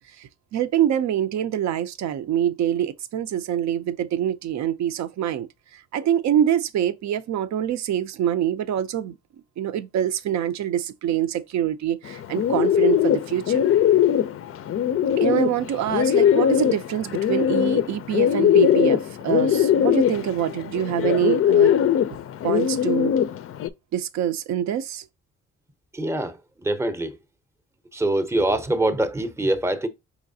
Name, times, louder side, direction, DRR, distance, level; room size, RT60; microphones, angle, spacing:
voice 1, 0.2-5.5 5.9-9.2 9.6-13.7 15.2-21.8 22.4-23.1 23.9-25.0, right 10 dB, 65° right, 0.6 m, -25 dB
Bird, 12.0-23.7, left 9 dB, 50° left, 0.4 m, -21 dB
voice 2, 25.9-26.4 26.6-27.2 27.9-29.9, right 1 dB, 10° right, 0.6 m, -24 dB
4.9 x 3.1 x 2.6 m
cardioid pair, 90°, 30 cm